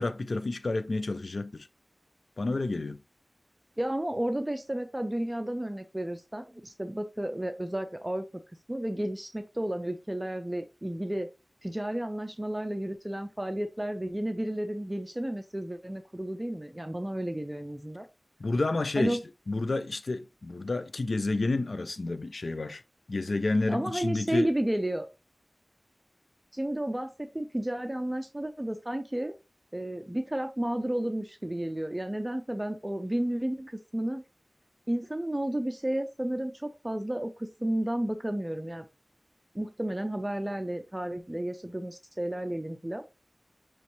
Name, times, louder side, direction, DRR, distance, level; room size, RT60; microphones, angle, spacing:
voice 1, 0.0-1.7 2.4-3.0 18.4-19.2 19.5-22.8 23.1-24.5, left 2 dB, 80° left, 0.4 m, -30 dB
voice 2, 3.8-8.2 8.7-11.3 11.6-18.0 19.0-19.2 23.7-25.1 26.5-29.3 29.7-34.2 34.9-38.9 39.5-43.0, right 1 dB, 20° right, 0.5 m, -32 dB
5.6 x 3.0 x 3.0 m
wide cardioid pair, 45°, 0 cm